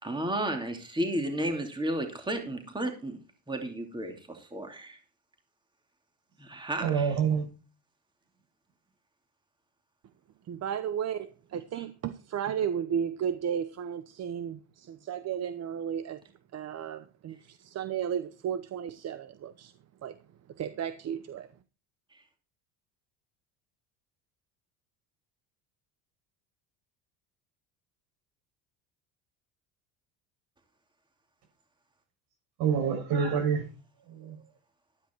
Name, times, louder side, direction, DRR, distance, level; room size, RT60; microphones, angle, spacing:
voice 1, 0.0-3.2 3.5-5.0 6.4-7.1 11.8-11.9, right 1 dB, 10° right, 3.0 m, -33 dB
voice 2, 6.8-7.5 32.6-33.6 34.1-34.4, right 7 dB, 70° right, 7.6 m, -27 dB
voice 3, 10.4-16.2 16.5-19.7 20.0-20.2 20.5-21.5, right 8 dB, 40° right, 0.9 m, -34 dB
13.0 x 10.0 x 4.6 m
supercardioid pair, 100°, 40 cm